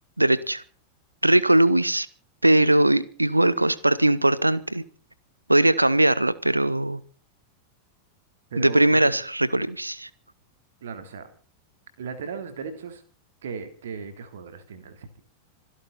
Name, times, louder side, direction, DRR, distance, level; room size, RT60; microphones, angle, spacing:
voice 1, 0.2-0.6 1.2-2.1 2.4-4.8 5.5-7.0 8.6-10.1, right 1 dB, 85° right, 1.0 m, -20 dB
voice 2, 8.5-9.1 10.8-11.3 12.0-13.0 13.4-15.1, right 6 dB, 60° right, 3.5 m, -36 dB
26.0 x 11.5 x 4.2 m
figure-of-eight pair, 90°, 0 cm